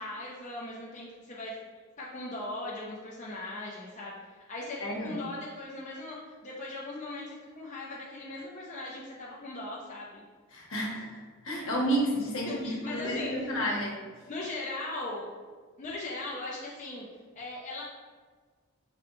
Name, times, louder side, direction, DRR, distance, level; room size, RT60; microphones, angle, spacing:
voice 1, 0.0-1.5 2.0-10.2 12.5-13.5 14.3-15.3 15.8-17.1 17.3-17.8, left 2 dB, 35° left, -5 dB, 0.6 m, -39 dB
voice 2, 4.8-5.2 10.5-13.9, right 1 dB, 70° left, -2 dB, 1.1 m, -31 dB
5.1 x 3.1 x 3.0 m, 1.5 s
head